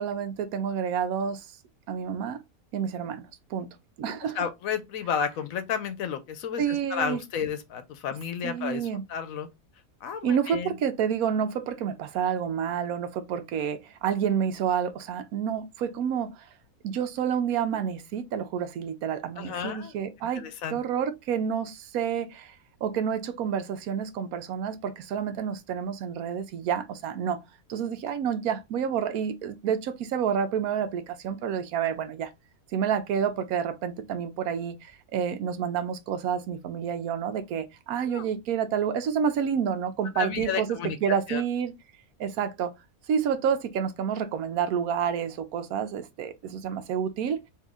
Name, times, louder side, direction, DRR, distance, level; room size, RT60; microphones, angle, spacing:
voice 1, 0.0-1.5 1.9-2.4 2.7-4.4 6.6-7.2 8.4-9.1 10.2-16.5 16.8-20.5 20.7-27.4 27.7-32.3 32.7-41.7 42.2-42.7 43.1-47.4, right 8 dB, 75° right, 1.1 m, -29 dB
voice 2, 4.2-9.5 10.0-10.8 19.4-19.9 20.4-20.8 38.1-38.3 40.2-41.0 41.3-41.4, left 7 dB, 70° left, 1.0 m, -32 dB
3.7 x 2.7 x 3.6 m
omnidirectional pair, 1.6 m